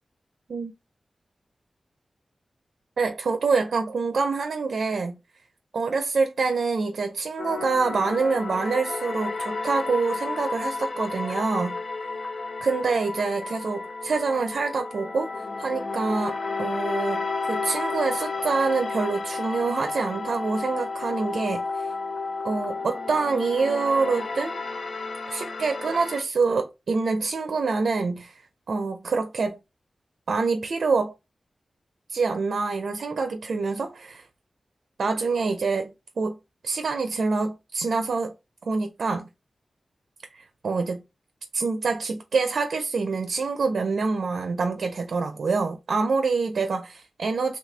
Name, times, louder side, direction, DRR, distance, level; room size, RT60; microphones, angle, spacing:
voice 1, 3.0-5.2 5.7-11.8 12.6-21.8 22.4-24.6 25.3-28.4 28.7-29.6 30.3-31.1 32.1-34.2 35.0-36.3 36.6-38.3 38.7-39.3 40.3-41.0 41.5-47.6, right 4 dB, 80° right, 0.4 m, -26 dB
sound 1, 7.4-26.2, left 3 dB, 65° left, 0.5 m, -32 dB
3.0 x 2.4 x 3.2 m
cardioid pair, 40°, 0 cm